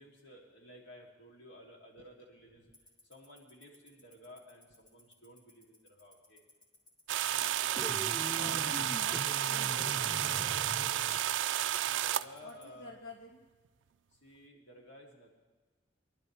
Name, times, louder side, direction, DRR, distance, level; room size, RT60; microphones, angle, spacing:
voice 1, 0.0-2.7 3.0-6.4 7.3-7.8 8.3-9.1 9.7-11.2 11.8-13.0 14.1-15.3, left 1 dB, 65° left, -1 dB, 3.0 m, -54 dB
Tick-tock, 2.7-12.6, left 3 dB, 45° left, 3.0 m, -59 dB
sound 1, 7.1-12.3, right 12 dB, 75° right, 0.4 m, -32 dB
sound 2, 7.8-11.3, equal, ahead, 0.5 m, -42 dB
voice 2, 8.3-9.9 12.4-13.4, left 1 dB, 85° left, -1 dB, 1.4 m, -49 dB
23.5 x 12.0 x 3.4 m, 1.3 s
head